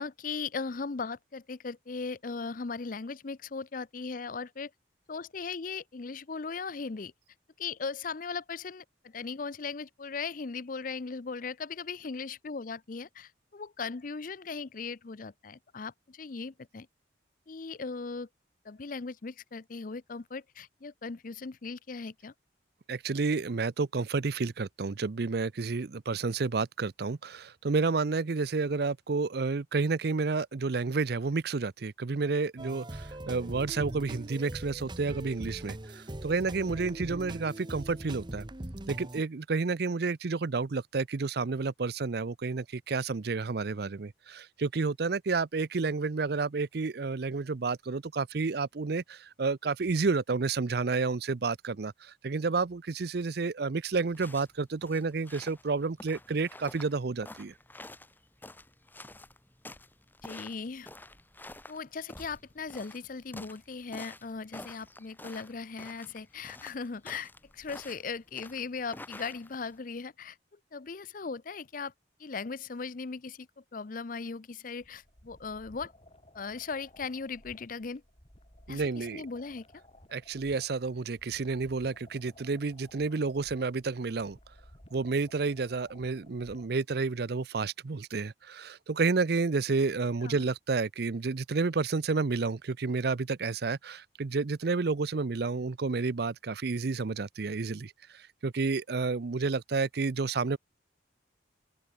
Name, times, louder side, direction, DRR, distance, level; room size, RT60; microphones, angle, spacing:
voice 1, 0.0-4.7 5.1-7.1 7.6-16.9 17.5-18.3 18.6-22.3 60.2-60.9 61.7-70.4 70.7-71.9 72.2-75.9 76.3-78.0 78.7-79.6 90.2-90.5, left 4 dB, 45° left, 0.6 m, -38 dB
voice 2, 22.9-38.5 38.9-57.5 78.7-79.2 80.1-84.4 84.9-100.6, right 4 dB, 55° right, 0.5 m, -30 dB
sound 1, 32.6-39.2, right 1 dB, 25° right, 1.2 m, -41 dB
sound 2, 54.0-69.8, left 2 dB, 10° left, 2.0 m, -49 dB
sound 3, 74.8-86.8, left 1 dB, 30° left, 5.3 m, -57 dB
open air
head